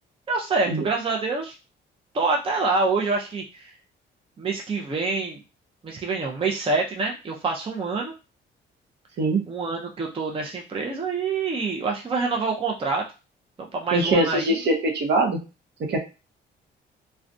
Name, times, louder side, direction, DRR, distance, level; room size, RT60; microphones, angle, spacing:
voice 1, 0.3-1.6 2.1-3.7 4.4-5.4 5.8-8.1 9.5-13.1 13.6-14.6, right 3 dB, 25° right, 0 dB, 0.5 m, -26 dB
voice 2, 13.9-15.4 15.8-16.0, right 2 dB, 60° right, 1 dB, 0.7 m, -22 dB
2.4 x 2.2 x 2.5 m, 0.29 s
cardioid pair, 90°, 20 cm